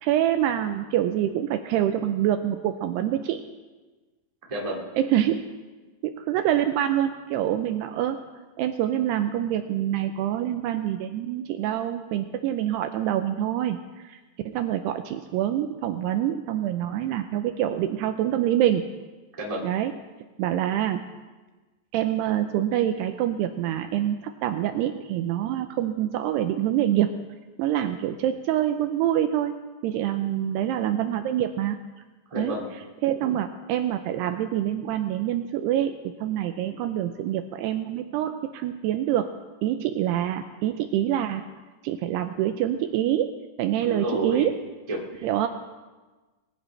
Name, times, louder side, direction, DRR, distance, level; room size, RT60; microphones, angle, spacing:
voice 1, 0.0-3.4 5.0-5.4 6.0-8.2 8.6-13.8 14.0-14.2 14.5-18.9 19.6-19.9 20.4-21.0 21.9-27.1 27.6-29.5 29.8-31.8 32.4-32.5 33.0-39.3 39.6-41.4 41.8-43.3 43.6-44.6 45.2-45.5, right 11 dB, 80° right, 7 dB, 2.5 m, -26 dB
voice 2, 4.5-4.8 19.4-19.6 32.3-32.7 43.8-44.5 44.9-45.5, right 1 dB, 25° right, -3 dB, 0.8 m, -30 dB
22.0 x 15.0 x 3.2 m, 1.3 s
omnidirectional pair, 5.2 m